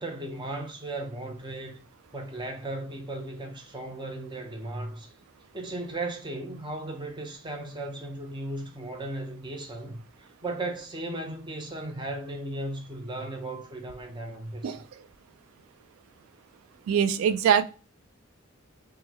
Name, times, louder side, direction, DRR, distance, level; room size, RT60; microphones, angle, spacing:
voice 1, 0.0-1.8 2.1-5.1 5.5-14.8, right 2 dB, 25° right, 0.6 m, -36 dB
voice 2, 14.6-15.0 16.9-17.6, right 8 dB, 90° right, 0.3 m, -23 dB
3.6 x 2.2 x 2.8 m
head